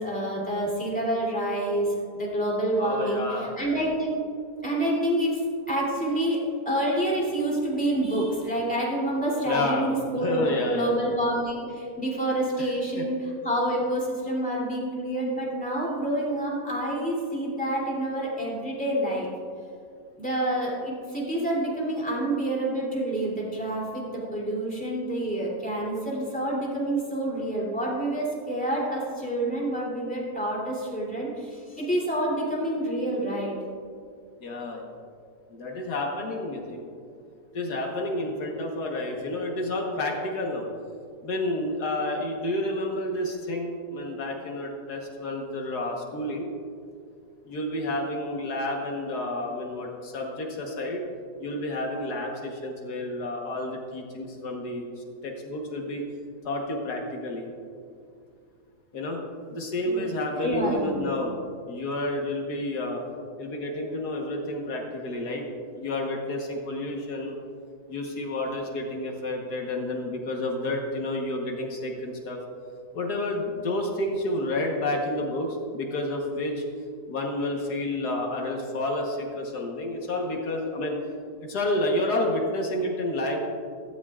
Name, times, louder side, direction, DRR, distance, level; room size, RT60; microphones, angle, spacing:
voice 1, 0.0-4.2 4.6-5.4 5.7-19.3 20.2-33.5 59.8-60.0 60.3-61.1, right 1 dB, 5° left, -5 dB, 2.8 m, -28 dB
voice 2, 2.8-3.5 9.5-10.0 10.2-11.0 12.6-13.1 34.4-34.9 35.5-36.8 37.5-40.7 41.2-46.5 47.5-51.0 51.4-54.8 55.2-56.0 56.4-57.5 58.9-59.2 59.5-61.3 61.7-63.0 63.4-65.4 65.8-67.4 67.9-72.4 72.9-76.6 77.1-81.0 81.5-83.4, left 1 dB, 80° left, 0 dB, 1.8 m, -30 dB
16.0 x 13.0 x 2.4 m, 2.3 s
omnidirectional pair, 1.7 m